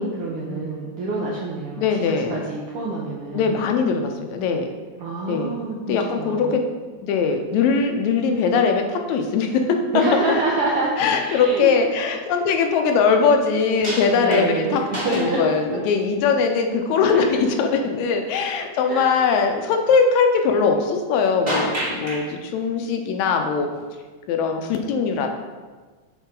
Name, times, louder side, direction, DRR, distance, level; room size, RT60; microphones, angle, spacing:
voice 1, 0.0-3.6 5.0-6.6 9.9-11.7 14.1-15.4 17.0-17.4 18.9-19.0, right 2 dB, 75° right, -3 dB, 1.3 m, -27 dB
voice 2, 1.8-2.4 3.3-4.7 5.3-5.5 5.9-6.6 7.0-10.0 11.0-14.8 15.1-21.7 22.0-23.7 24.3-25.3, left 5 dB, 80° left, 4 dB, 1.9 m, -21 dB
sound 1, 13.8-15.8 16.4-16.5 21.5-22.2 23.8-23.9, equal, 15° right, 1.2 m, -28 dB
7.1 x 4.5 x 3.8 m, 1.4 s
omnidirectional pair, 3.4 m